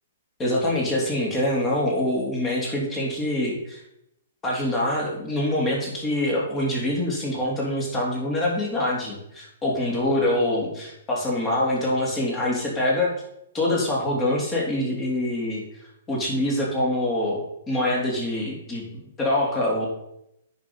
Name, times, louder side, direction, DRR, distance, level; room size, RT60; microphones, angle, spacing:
voice 1, 0.4-3.8 4.4-13.1 13.5-15.6 16.1-18.8 19.2-19.9, left 1 dB, 20° left, -3 dB, 3.5 m, -25 dB
9.4 x 5.6 x 5.7 m, 0.81 s
figure-of-eight pair, 120°, 0 cm